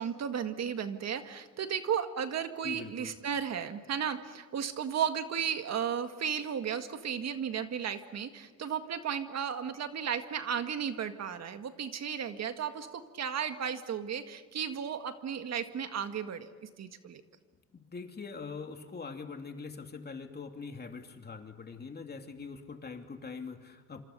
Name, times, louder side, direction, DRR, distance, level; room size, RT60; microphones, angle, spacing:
voice 1, 0.0-16.5 16.8-17.2, right 8 dB, 60° right, 8 dB, 1.8 m, -34 dB
voice 2, 2.6-3.1 17.7-24.0, left 4 dB, 35° left, 5 dB, 2.9 m, -43 dB
27.0 x 26.5 x 6.8 m, 1.4 s
cardioid pair, 90°, 30 cm